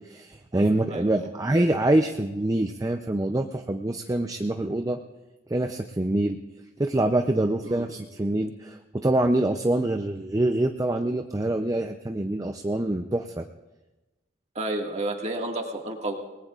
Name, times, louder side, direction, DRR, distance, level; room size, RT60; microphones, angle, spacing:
voice 1, 0.1-5.0 5.5-6.4 6.8-13.5, right 1 dB, 20° right, 5 dB, 0.5 m, -25 dB
voice 2, 0.9-1.3 7.6-7.8 14.6-16.2, right 1 dB, 35° right, 1 dB, 1.8 m, -31 dB
28.5 x 19.0 x 2.4 m, 1.1 s
head